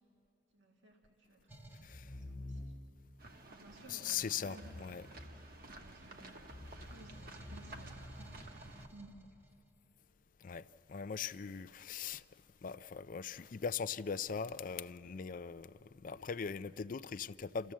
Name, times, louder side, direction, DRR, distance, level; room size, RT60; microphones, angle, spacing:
voice 1, 0.5-2.7 3.4-4.8 5.7-8.4 8.9-9.2, right 2 dB, 75° right, 1.9 m, -58 dB
sound 1, 1.5-2.0 3.3-5.2 5.6-9.7, right 1 dB, 10° right, 1.3 m, -57 dB
sound 2, 1.8-3.1 4.4-5.9 6.4-8.9, left 1 dB, 15° left, 1.1 m, -50 dB
sound 3, 3.2-8.9, right 2 dB, 50° right, 1.2 m, -54 dB
voice 2, 3.9-5.0 10.4-12.2 12.6-17.7, left 6 dB, 45° left, 0.4 m, -40 dB
29.0 x 14.5 x 7.3 m
head